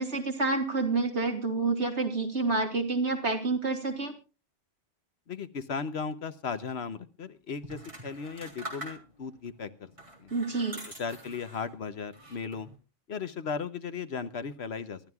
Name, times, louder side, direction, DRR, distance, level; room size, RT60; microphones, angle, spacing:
voice 1, 0.0-4.1 10.3-10.8, right 3 dB, 70° right, 4 dB, 2.8 m, -28 dB
voice 2, 5.3-9.9 10.2-10.3 10.9-12.7 13.1-15.0, left 5 dB, 60° left, 12 dB, 1.1 m, -36 dB
sound 1, 7.6-9.4 9.9-11.7 12.1-12.8, right 1 dB, 25° right, 3.4 m, -44 dB
25.0 x 12.5 x 2.3 m, 0.31 s
omnidirectional pair, 1.2 m